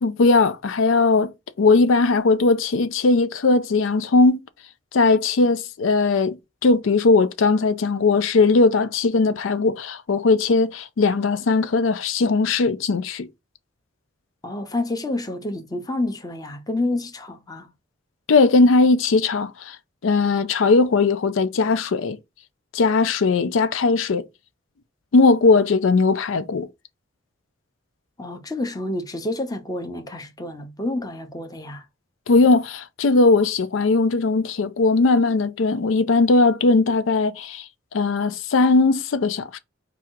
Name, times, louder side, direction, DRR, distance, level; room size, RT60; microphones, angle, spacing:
voice 1, 0.0-4.4 4.9-13.3 18.3-19.8 20.0-22.2 22.7-24.3 25.1-26.7 32.3-37.6 37.9-39.6, left 3 dB, 90° left, 0.5 m, -19 dB
voice 2, 14.4-17.7 28.2-31.8, left 2 dB, 20° left, 0.7 m, -29 dB
4.9 x 2.4 x 4.5 m
head